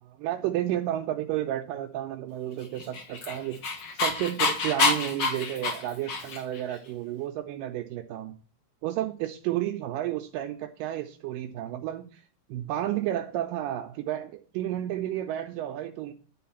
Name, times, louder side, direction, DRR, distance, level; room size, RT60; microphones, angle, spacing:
voice 1, 0.0-3.6 3.9-8.3 8.8-12.2 12.5-16.1, right 12 dB, 85° right, 4 dB, 2.2 m, -31 dB
Dog, 2.8-6.6, left 3 dB, 60° left, 1.1 m, -27 dB
10.0 x 3.9 x 7.0 m, 0.39 s
omnidirectional pair, 3.9 m